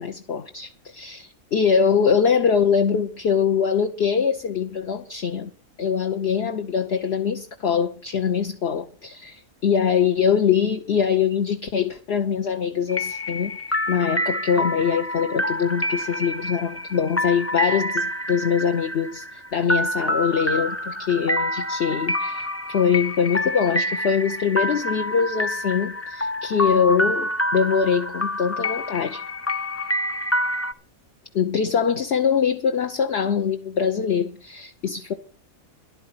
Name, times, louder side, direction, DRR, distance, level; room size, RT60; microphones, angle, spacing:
voice 1, 0.0-5.5 5.8-13.6 13.9-29.2 31.3-35.1, left 7 dB, 50° left, 1.1 m, -23 dB
sound 1, 12.9-30.7, equal, 15° left, 0.4 m, -27 dB
13.5 x 11.5 x 5.7 m
omnidirectional pair, 1.5 m